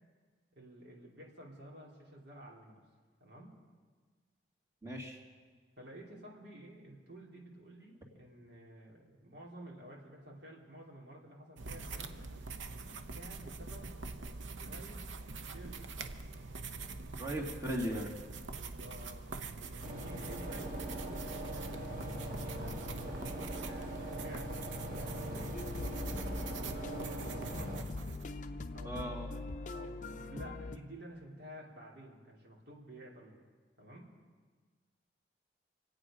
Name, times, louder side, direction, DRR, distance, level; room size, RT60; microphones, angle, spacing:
voice 1, 0.5-2.8 3.2-3.5 5.8-12.3 13.1-14.0 14.5-15.1 15.5-15.9 18.5-22.8 23.5-25.5 26.4-27.8 28.7-29.0 29.7-33.4 33.8-34.1, right 1 dB, 70° right, -3 dB, 3.2 m, -52 dB
voice 2, 4.8-5.2 17.2-18.1 28.8-29.3, equal, 15° right, -2 dB, 2.1 m, -37 dB
sound 1, 11.6-28.2, right 3 dB, 85° right, 0.8 m, -44 dB
sound 2, 19.8-27.8, equal, 45° right, 2.1 m, -41 dB
sound 3, 25.5-30.8, left 2 dB, 40° left, 0.5 m, -42 dB
26.5 x 8.9 x 5.1 m, 1.5 s
head